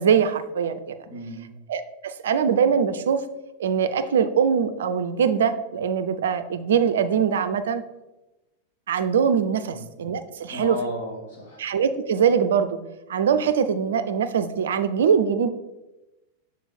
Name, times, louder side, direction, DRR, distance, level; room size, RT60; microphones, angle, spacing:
voice 1, 0.0-0.9 1.7-3.2 3.6-7.8 8.9-10.8 11.6-12.8 13.1-15.5, right 7 dB, 60° right, 11 dB, 0.4 m, -22 dB
voice 2, 1.1-1.5 9.7-9.8 10.5-11.6, left 1 dB, 55° left, -3 dB, 2.1 m, -34 dB
6.2 x 3.9 x 4.0 m, 1.0 s
figure-of-eight pair, 90°, 0 cm